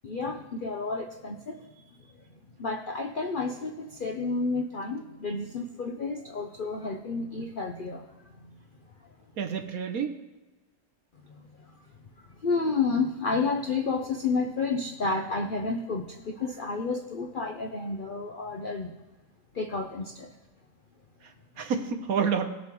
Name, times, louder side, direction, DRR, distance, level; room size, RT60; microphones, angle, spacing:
voice 1, 0.0-1.6 2.6-8.1 11.3-11.4 12.4-18.9 19.5-20.3, left 4 dB, 70° left, 4 dB, 0.4 m, -30 dB
voice 2, 9.4-10.2 21.2-22.4, right 6 dB, 60° right, 7 dB, 1.2 m, -29 dB
19.0 x 7.3 x 3.0 m, 1.1 s
omnidirectional pair, 1.8 m